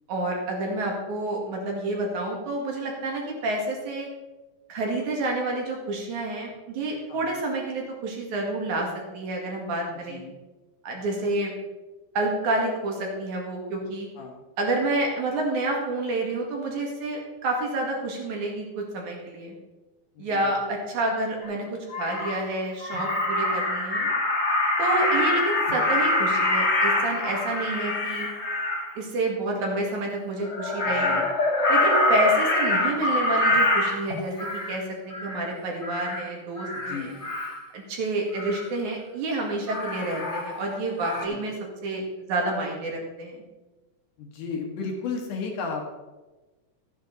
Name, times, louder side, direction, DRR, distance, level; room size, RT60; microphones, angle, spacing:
voice 1, 0.1-4.1 4.7-8.9 9.1-10.2 10.8-11.5 12.2-14.1 14.6-19.6 20.2-24.1 24.8-28.3 29.0-31.2 31.7-37.1 37.7-41.5 41.8-43.4, right 2 dB, 70° right, 0 dB, 3.5 m, -29 dB
Crow, 21.4-21.5 21.9-22.4 22.8-28.9 30.4-34.8 35.1-35.5 35.8-36.2 36.6-37.6 38.3-38.7 39.7-40.7 41.0-41.3, left 2 dB, 30° left, 1.5 m, -25 dB
voice 2, 30.9-31.2 36.8-37.2 41.3-41.4 44.2-45.9, left 4 dB, 80° left, 2 dB, 3.2 m, -34 dB
13.0 x 9.8 x 4.0 m, 1.2 s
omnidirectional pair, 3.6 m